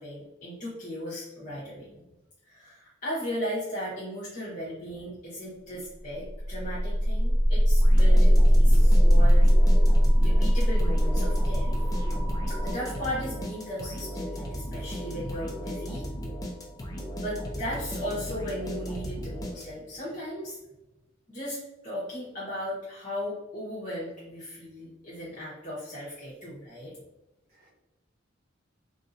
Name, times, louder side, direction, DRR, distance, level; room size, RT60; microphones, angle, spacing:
voice 1, 0.0-1.9 2.4-9.5 10.2-11.8 12.5-16.0 17.2-20.6 21.3-26.9, equal, 40° left, -10 dB, 0.9 m, -36 dB
voice 2, 1.4-2.0 12.2-12.5 27.5-27.7, equal, 45° right, -6 dB, 1.2 m, -57 dB
sound 1, 6.1-16.1, equal, 10° right, 0.9 m, -22 dB
sound 2, 7.8-20.0, equal, 20° left, 0.4 m, -36 dB
3.2 x 2.6 x 2.5 m, 0.97 s
head